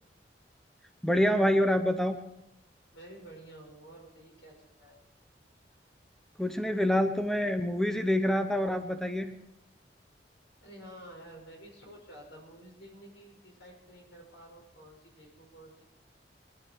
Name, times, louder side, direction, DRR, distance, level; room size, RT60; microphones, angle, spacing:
voice 1, 1.0-2.2 6.4-9.3, equal, 5° left, 7 dB, 0.8 m, -26 dB
voice 2, 2.9-5.0 10.6-15.8, right 1 dB, 85° left, 0 dB, 6.4 m, -51 dB
21.5 x 11.5 x 4.8 m, 0.92 s
head